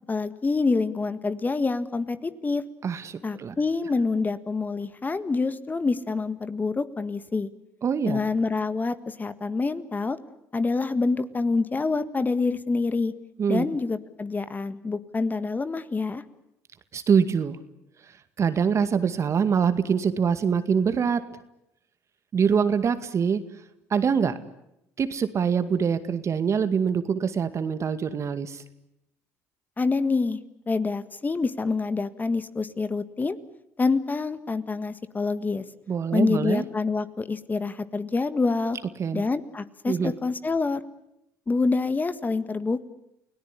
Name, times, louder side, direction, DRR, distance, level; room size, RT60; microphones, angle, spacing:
voice 1, 0.1-2.6 3.2-7.5 8.1-10.2 10.5-13.1 13.5-16.2 29.8-30.4 30.7-33.4 33.8-35.6 36.1-38.8 39.1-40.8 41.5-42.8, left 4 dB, 25° left, 13 dB, 1.7 m, -26 dB
voice 2, 2.8-3.5 7.8-8.2 13.4-13.7 16.9-17.6 18.4-21.3 22.3-23.4 23.9-24.4 25.0-28.6 35.9-36.6 39.0-39.2 39.9-40.1, right 6 dB, 45° right, 11 dB, 2.1 m, -24 dB
29.5 x 17.5 x 10.0 m, 0.83 s
hypercardioid pair, 65°, 7 cm